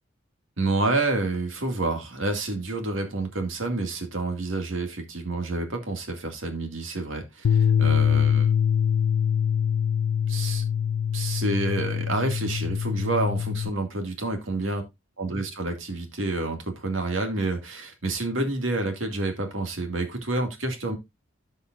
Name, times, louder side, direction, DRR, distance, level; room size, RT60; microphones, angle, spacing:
voice 1, 0.6-8.5 10.3-10.6 11.1-14.8 15.2-21.0, right 2 dB, 70° right, 2.3 m, -28 dB
sound 1, 7.4-13.7, left 8 dB, 85° left, 0.4 m, -24 dB
15.0 x 5.4 x 2.5 m
head